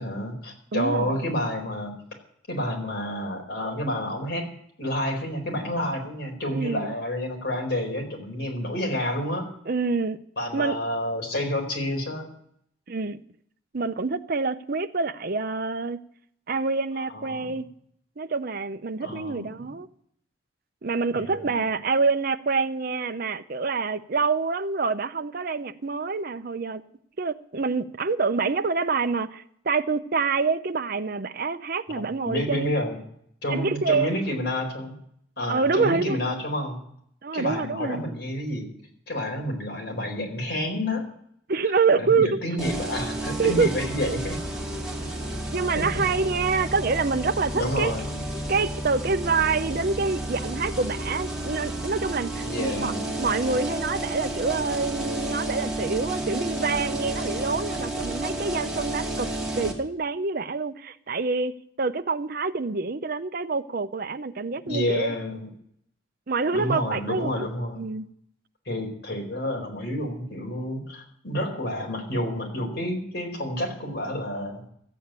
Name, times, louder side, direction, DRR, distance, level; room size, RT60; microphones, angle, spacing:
voice 1, 0.0-1.9 2.5-4.5 4.8-9.5 10.4-12.3 17.1-17.4 19.0-19.7 21.1-21.7 31.9-33.0 33.4-35.0 35.4-36.8 37.3-38.7 39.1-41.1 42.0-44.4 45.0-45.1 45.8-46.0 47.5-48.2 52.4-53.0 64.6-65.5 66.5-67.9 68.6-74.6, left 1 dB, 60° left, 4.4 m, -29 dB
voice 2, 0.7-1.1 6.5-6.9 9.7-10.2 10.5-10.8 12.9-13.2 13.7-16.0 16.5-17.7 18.2-19.9 20.8-26.8 27.2-32.8 33.5-34.2 35.5-36.2 37.2-38.0 41.5-42.4 43.4-43.7 44.0-44.2 45.5-47.9 48.5-52.9 53.2-59.3 59.5-65.2 66.3-67.5 67.8-68.1, right 4 dB, 50° right, 0.7 m, -26 dB
sound 1, 42.6-59.7, right 1 dB, 5° right, 2.4 m, -31 dB
14.0 x 8.5 x 9.1 m
head